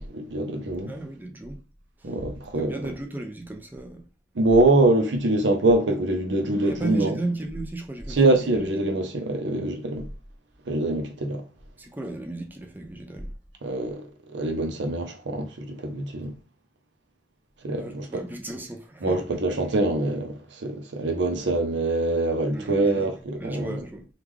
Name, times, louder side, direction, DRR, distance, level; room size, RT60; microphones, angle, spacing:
voice 1, 0.0-0.9 2.0-2.9 4.4-7.2 8.1-10.1 10.7-11.4 13.6-14.1 14.3-16.3 17.6-18.2 19.0-23.8, right 2 dB, 85° right, 0.6 m, -24 dB
voice 2, 0.9-1.6 2.0-2.1 2.6-4.0 6.7-8.7 11.8-13.3 17.7-19.4 22.5-24.1, right 2 dB, 10° right, 0.5 m, -35 dB
3.1 x 2.3 x 3.5 m
head